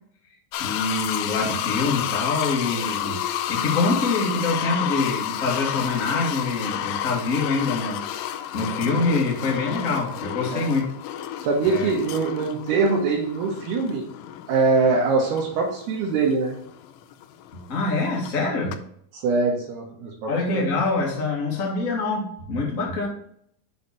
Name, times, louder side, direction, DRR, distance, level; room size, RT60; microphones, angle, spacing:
sound 1, 0.5-18.3 18.7-18.8, left 11 dB, 85° left, 2.8 m, -31 dB
voice 1, 0.6-3.2 3.5-8.0 8.5-10.9 11.6-11.9 17.5-18.8 20.3-23.1, left 3 dB, 35° left, -2 dB, 1.3 m, -25 dB
voice 2, 11.4-14.0 14.5-16.6 19.1-20.6, right 4 dB, 75° right, -3 dB, 3.1 m, -23 dB
7.8 x 4.1 x 6.9 m, 0.68 s
omnidirectional pair, 4.9 m